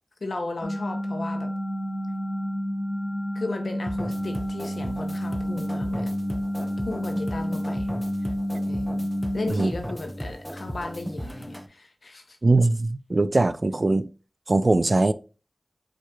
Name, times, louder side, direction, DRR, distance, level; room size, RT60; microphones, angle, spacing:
voice 1, 0.2-1.5 3.3-6.1 6.9-7.9 8.2-8.3 8.7-12.4 13.7-13.8, left 2 dB, 70° left, 0.8 m, -35 dB
sound 1, 0.6-9.5, equal, 50° left, 1.4 m, -29 dB
sound 2, 3.9-11.7, equal, ahead, 0.6 m, -36 dB
voice 2, 12.4-14.1 14.5-15.1, right 2 dB, 45° right, 0.3 m, -21 dB
4.8 x 4.4 x 2.4 m
wide cardioid pair, 65°, 0 cm